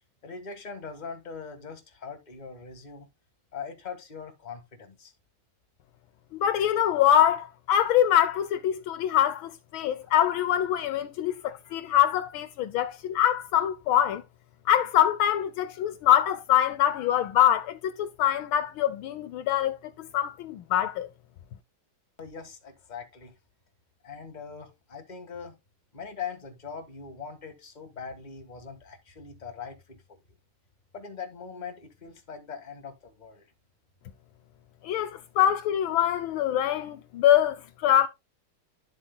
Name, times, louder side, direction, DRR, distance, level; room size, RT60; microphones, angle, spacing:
voice 1, 0.2-3.1 3.5-5.1 9.9-10.1 12.9-13.0 22.2-23.3 24.0-25.6 25.9-30.2 30.9-33.5 35.1-35.2, left 6 dB, 25° left, 1.5 m, -41 dB
voice 2, 6.4-14.2 14.7-21.1 34.8-38.1, left 11 dB, 75° left, 1.4 m, -24 dB
11.5 x 7.4 x 2.2 m
omnidirectional pair, 2.3 m